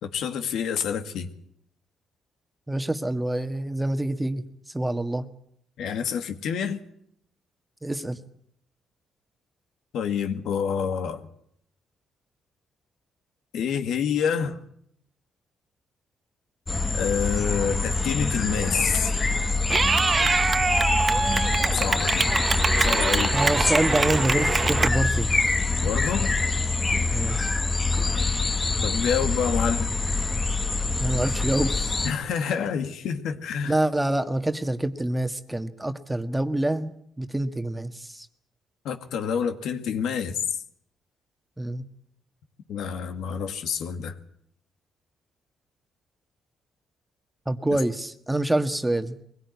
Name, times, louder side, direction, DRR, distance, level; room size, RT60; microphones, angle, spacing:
voice 1, 0.0-1.3 5.8-6.8 9.9-11.3 13.5-14.6 16.9-19.1 21.7-22.3 22.8-23.4 25.8-26.3 28.8-29.9 32.0-33.7 38.8-40.3 42.7-44.1 47.7-47.8, left 7 dB, 75° left, 2.1 m, -28 dB
voice 2, 2.7-4.4 4.7-5.3 7.8-8.2 23.3-25.3 27.1-27.4 31.0-32.0 33.6-38.3 41.6-41.8 47.4-49.2, right 1 dB, 10° right, 1.6 m, -26 dB
sound 1, 16.7-32.1, left 3 dB, 25° left, 1.7 m, -25 dB
Clapping / Cheering, 19.7-24.9, right 4 dB, 35° right, 1.1 m, -24 dB
23.0 x 17.0 x 9.6 m
cardioid pair, 90°, 0 cm